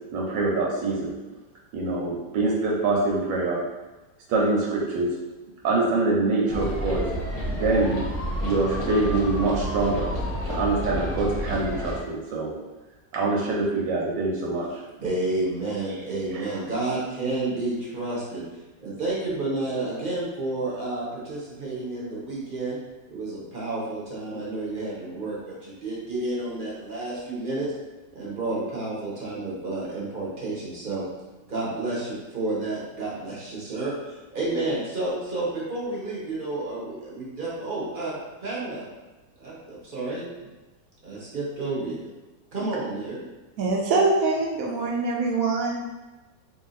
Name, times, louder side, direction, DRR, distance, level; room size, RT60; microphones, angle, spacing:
voice 1, 0.1-1.1 1.7-3.6 4.3-5.1 5.6-7.0 7.5-8.0 8.4-10.1 10.5-12.5 13.1-14.7 16.3-16.4, right 3 dB, 85° right, -3 dB, 1.4 m, -24 dB
sound 1, 6.5-12.0, equal, 35° left, 0.6 m, -30 dB
voice 2, 15.0-18.4 18.8-22.8 23.1-27.7 28.1-31.0 31.5-38.2 38.4-38.9 39.4-40.5 41.0-42.1 42.5-43.2, right 2 dB, 40° right, -6 dB, 0.8 m, -30 dB
voice 3, 43.6-45.8, right 3 dB, 70° right, -1 dB, 0.8 m, -23 dB
3.1 x 2.7 x 4.0 m, 1.1 s
omnidirectional pair, 1.9 m